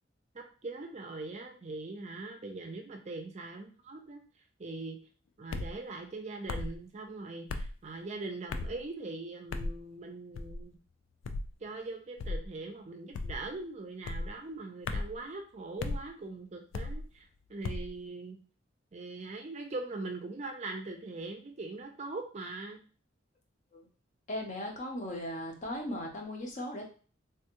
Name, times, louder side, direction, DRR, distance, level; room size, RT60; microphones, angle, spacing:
voice 1, 0.3-4.2 4.6-5.0 5.4-10.8 11.6-18.4 18.9-22.8, right 3 dB, 35° right, 3 dB, 0.5 m, -41 dB
sound 1, 5.5-5.7 6.5-6.8 7.5-7.7 8.5-8.8 9.5-9.8 10.3-10.6 11.2-11.5 12.2-12.5 13.1-13.5 14.0-14.3 14.9-15.2 15.8-16.0 16.7-17.0 17.6-17.9, left 3 dB, 80° left, 0.3 m, -35 dB
voice 2, 24.3-26.9, left 1 dB, 40° left, 1 dB, 0.7 m, -37 dB
3.4 x 2.3 x 2.9 m, 0.39 s
head